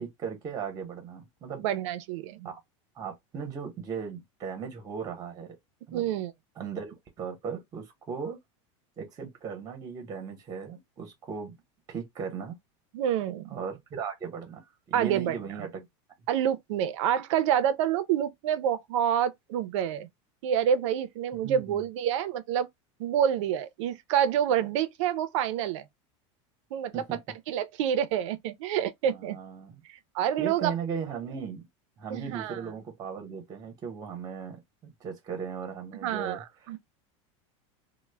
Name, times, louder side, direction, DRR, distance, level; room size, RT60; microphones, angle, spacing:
voice 1, 0.0-1.6 2.4-2.6 2.9-5.5 5.9-6.0 6.6-8.4 9.0-11.5 11.9-12.6 13.5-15.9 21.4-21.8 26.9-27.2 29.1-29.8 30.4-31.7 32.0-36.7, right 6 dB, 25° right, 0.7 m, -37 dB
voice 2, 1.6-2.5 5.9-6.3 12.9-13.4 14.9-15.6 16.3-20.1 20.4-22.7 23.0-25.9 26.7-27.0 27.5-29.4 29.9-30.7 32.1-32.6 36.0-36.8, right 9 dB, 75° right, 0.4 m, -28 dB
2.1 x 2.1 x 3.2 m
supercardioid pair, 140°, 16 cm